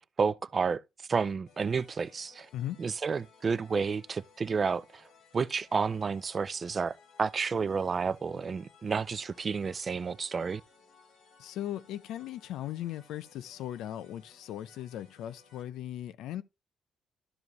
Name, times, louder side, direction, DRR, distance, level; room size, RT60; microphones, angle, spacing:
voice 1, 0.2-0.8 1.1-2.5 2.8-5.0 5.3-10.6, right 5 dB, 25° right, 0.3 m, -30 dB
sound 1, 1.5-15.6, left 5 dB, 65° left, 2.5 m, -61 dB
voice 2, 11.4-16.4, left 12 dB, 80° left, 0.6 m, -38 dB
12.0 x 4.9 x 3.1 m
cardioid pair, 170°, 0 cm